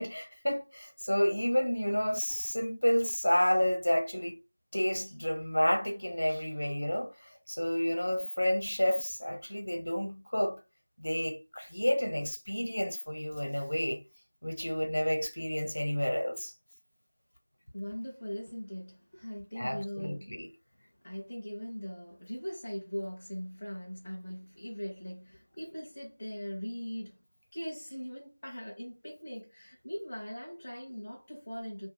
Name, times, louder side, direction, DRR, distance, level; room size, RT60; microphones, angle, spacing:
voice 1, 0.0-4.4 4.7-7.1 7.5-10.6 11.0-14.0 14.4-16.5 19.6-20.5, equal, 70° left, 0.8 m, -30 dB
voice 2, 17.7-20.4 20.7-27.2 27.5-31.9, equal, 10° left, 0.4 m, -40 dB
2.4 x 2.2 x 3.2 m
figure-of-eight pair, 180°, 0 cm